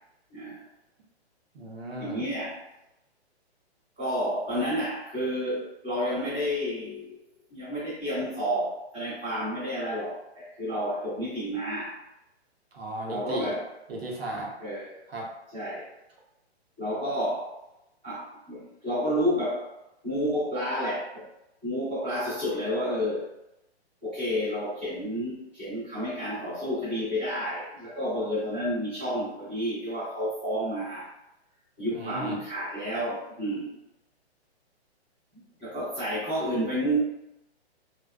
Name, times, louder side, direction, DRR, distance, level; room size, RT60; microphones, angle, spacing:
voice 1, 0.3-0.7 2.0-2.6 4.0-7.1 7.5-12.0 13.1-13.6 14.6-14.9 15.5-15.9 16.8-17.5 18.0-19.7 20.0-21.2 21.6-23.3 24.0-31.1 31.8-33.8 35.3-37.0, equal, 10° right, -18 dB, 0.5 m, -30 dB
voice 2, 1.5-2.3 12.7-13.5 13.9-14.5 15.1-15.3 31.9-32.4, right 1 dB, 65° right, -2 dB, 0.8 m, -35 dB
2.5 x 2.2 x 2.2 m, 0.88 s
hypercardioid pair, 180°, 33 cm